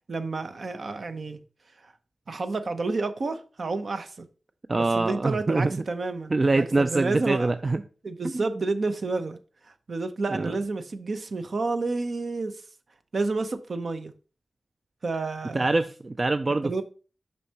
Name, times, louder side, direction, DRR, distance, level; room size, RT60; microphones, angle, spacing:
voice 1, 0.1-1.4 1.8-1.9 2.3-4.3 4.8-7.5 8.0-9.4 9.7-12.6 13.1-14.1 15.0-15.7 16.6-16.8, right 3 dB, 65° right, 0.7 m, -30 dB
voice 2, 4.7-5.8 6.3-7.8 8.3-8.4 10.3-10.5 15.5-16.8, right 2 dB, 40° right, 0.3 m, -24 dB
6.8 x 5.3 x 2.9 m
wide cardioid pair, 80°, 0 cm